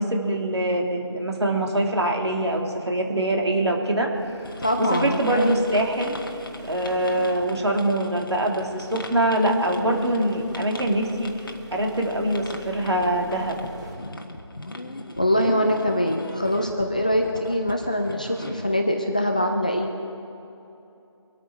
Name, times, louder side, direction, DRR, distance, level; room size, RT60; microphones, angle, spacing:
voice 1, 0.0-4.1 4.8-6.2 6.5-13.6, right 1 dB, 65° right, 1 dB, 2.7 m, -24 dB
sound 1, 4.1-13.9, right 1 dB, 40° right, 4.3 m, -43 dB
sound 2, 4.4-18.7, left 2 dB, 45° left, 1.3 m, -40 dB
voice 2, 4.6-5.6 15.2-19.9, left 1 dB, 15° left, 3 dB, 0.5 m, -23 dB
25.0 x 8.8 x 4.7 m, 2.8 s
figure-of-eight pair, 165°, 15 cm